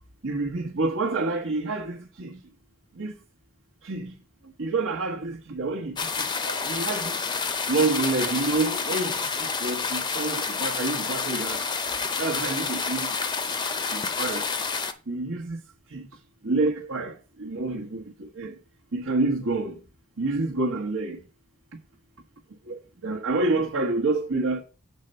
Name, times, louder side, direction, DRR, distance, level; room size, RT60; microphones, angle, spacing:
voice 1, 0.2-2.3 3.0-3.1 3.9-4.1 4.6-5.9 6.4-7.2 7.7-9.2 9.6-11.6 12.2-13.1 13.9-14.4 15.1-15.6 15.9-16.0 16.4-17.1 17.4-18.5 18.9-19.7 20.2-21.2 22.7-24.6, right 3 dB, 70° right, 1.1 m, -27 dB
sound 1, 6.0-14.9, left 5 dB, 20° left, 0.5 m, -29 dB
7.4 x 4.3 x 6.5 m
head